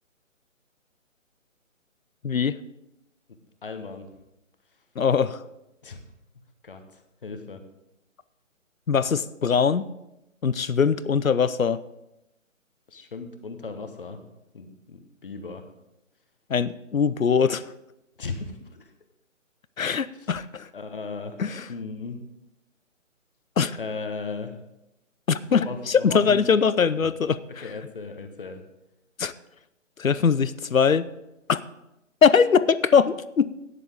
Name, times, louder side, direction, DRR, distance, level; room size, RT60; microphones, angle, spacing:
voice 1, 2.2-2.6 5.0-5.4 8.9-9.9 10.4-11.8 16.5-17.7 19.8-20.7 21.4-21.7 23.6-23.8 25.3-27.7 29.2-29.3 30.0-31.1 31.5-31.6 32.2-33.5, left 6 dB, 80° left, 16 dB, 0.7 m, -22 dB
voice 2, 3.6-4.0 5.8-6.0 6.6-6.8 7.2-7.6 12.9-14.2 14.5-15.6 18.2-18.9 20.7-21.4 21.7-22.2 23.8-24.5 25.4-26.4 27.6-28.6, left 4 dB, 40° left, 7 dB, 1.3 m, -36 dB
14.0 x 9.9 x 3.6 m, 0.90 s
figure-of-eight pair, 145°, 40 cm